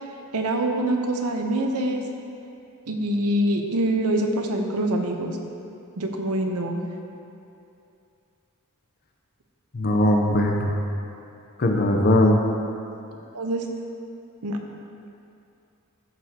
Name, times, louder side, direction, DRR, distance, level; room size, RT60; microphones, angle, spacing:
voice 1, 0.3-2.0 2.9-5.3 6.0-6.8 13.3-13.6 14.4-14.6, right 1 dB, 80° right, 3 dB, 0.9 m, -24 dB
voice 2, 9.7-10.8 11.6-12.4, left 1 dB, 45° left, 2 dB, 0.7 m, -20 dB
13.5 x 6.5 x 2.9 m, 2.6 s
head